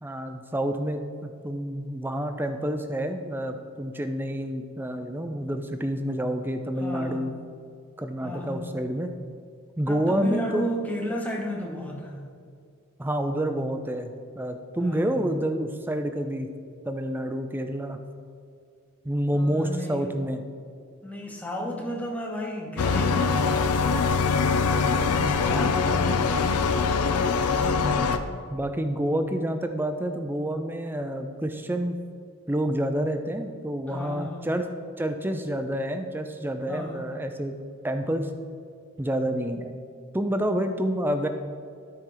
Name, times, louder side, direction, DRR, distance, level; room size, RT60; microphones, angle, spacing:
voice 1, 0.0-7.3 8.0-9.1 9.8-10.7 13.0-14.1 14.4-16.5 16.9-18.0 19.0-20.4 25.2-25.7 27.8-32.0 32.5-34.7 35.0-37.6 37.8-38.3 39.0-39.8 40.1-41.3, right 1 dB, 10° right, 7 dB, 0.4 m, -28 dB
voice 2, 6.8-7.3 8.2-8.7 9.9-12.2 14.8-15.3 19.3-20.1 21.0-23.8 24.8-26.5 33.9-34.5 36.7-37.0, equal, 5° left, -1 dB, 0.9 m, -33 dB
sound 1, 22.8-28.2, left 5 dB, 85° left, 0.5 m, -23 dB
12.5 x 4.4 x 3.9 m, 2.3 s
head